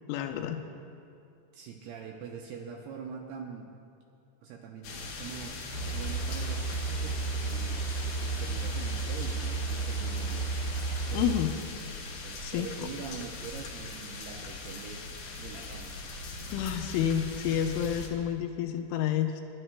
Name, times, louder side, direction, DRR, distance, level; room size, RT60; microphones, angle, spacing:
voice 1, 0.1-0.6 11.1-11.5 12.4-12.9 16.5-19.4, left 9 dB, 90° left, 5 dB, 3.2 m, -29 dB
voice 2, 1.5-3.7 4.4-5.5 5.9-7.8 8.4-10.5 11.1-11.6 12.2-15.0 15.4-16.0, right 6 dB, 80° right, 0 dB, 2.4 m, -44 dB
sound 1, 4.8-18.1, left 3 dB, 65° left, 2.0 m, -40 dB
sound 2, 5.7-11.3, right 4 dB, 60° right, 0.7 m, -33 dB
27.0 x 11.0 x 2.2 m, 2.6 s
omnidirectional pair, 5.4 m